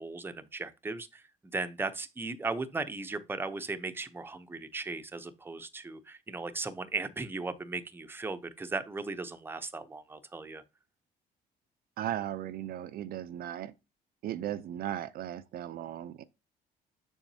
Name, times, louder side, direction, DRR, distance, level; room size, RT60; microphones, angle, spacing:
voice 1, 0.0-10.6, right 3 dB, 15° right, 0.7 m, -37 dB
voice 2, 12.0-13.7 14.2-16.2, right 11 dB, 60° right, 0.5 m, -36 dB
7.0 x 6.3 x 2.8 m
cardioid pair, 110°, 17 cm